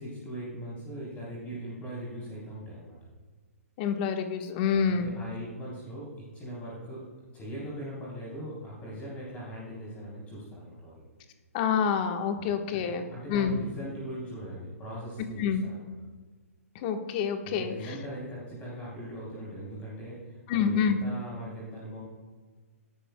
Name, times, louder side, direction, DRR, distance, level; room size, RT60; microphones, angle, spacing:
voice 1, 0.0-2.9 4.7-7.0 7.3-11.0 12.4-15.9 17.4-22.0, equal, 20° left, -6 dB, 3.5 m, -40 dB
voice 2, 3.8-5.1 11.5-13.0 13.3-13.6 15.4-15.6 16.7-17.7 20.5-21.0, left 7 dB, 35° left, 5 dB, 1.3 m, -27 dB
17.5 x 11.5 x 2.3 m, 1.4 s
hypercardioid pair, 145°, 8 cm